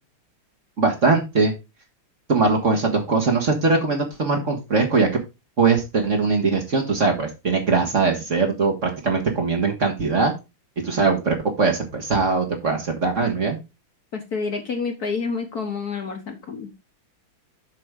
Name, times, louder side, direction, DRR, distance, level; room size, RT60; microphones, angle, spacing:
voice 1, 0.8-1.5 2.3-5.1 5.6-10.3 10.8-13.6, right 4 dB, 40° right, 1 dB, 1.6 m, -21 dB
voice 2, 14.1-16.9, left 4 dB, 50° left, 5 dB, 1.6 m, -29 dB
8.0 x 6.0 x 3.7 m, 0.25 s
omnidirectional pair, 2.4 m